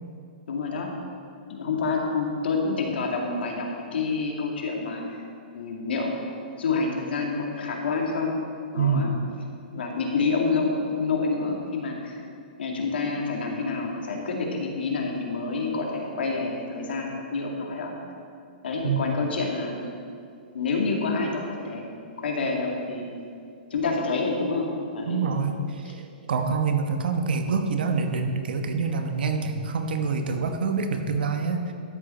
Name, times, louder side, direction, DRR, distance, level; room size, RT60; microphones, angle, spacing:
voice 1, 0.5-1.0 1.5-5.0 5.5-6.1 6.6-8.3 8.7-9.1 9.7-12.2 12.6-17.9 18.6-19.9 20.5-21.9 22.2-23.1 23.7-25.2 25.8-25.9, left 4 dB, 85° left, 0 dB, 2.1 m, -28 dB
voice 2, 8.8-9.2 18.8-19.1 25.1-25.9 26.3-31.7, right 4 dB, 70° right, 6 dB, 1.1 m, -26 dB
12.5 x 8.0 x 4.3 m, 2.4 s
hypercardioid pair, 170°, 5 cm